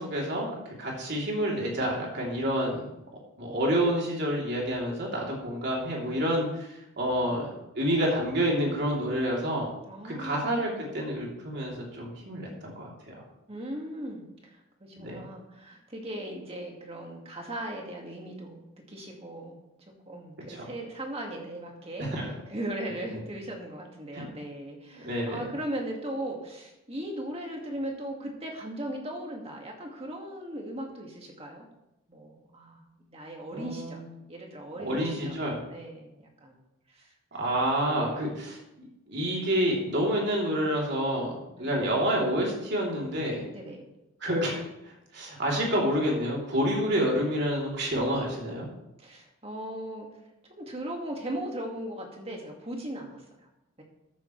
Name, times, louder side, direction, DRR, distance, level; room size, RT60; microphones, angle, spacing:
voice 1, 0.0-2.8 3.4-6.7 7.0-7.5 7.7-9.7 10.0-13.2 15.0-15.2 20.5-20.7 22.0-22.2 24.1-24.3 24.9-25.4 33.5-34.0 34.8-35.6 37.3-43.4 44.2-48.7, equal, 55° right, -3 dB, 3.2 m, -28 dB
voice 2, 9.9-10.9 13.5-19.6 20.1-22.1 22.5-31.7 32.1-35.4 35.7-36.6 36.9-37.1 37.8-38.4 41.6-41.8 43.5-43.9 46.9-47.0 49.0-50.1 50.6-53.2 53.8-53.9, right 1 dB, 30° right, 1 dB, 1.9 m, -38 dB
13.5 x 9.5 x 3.2 m, 0.89 s
head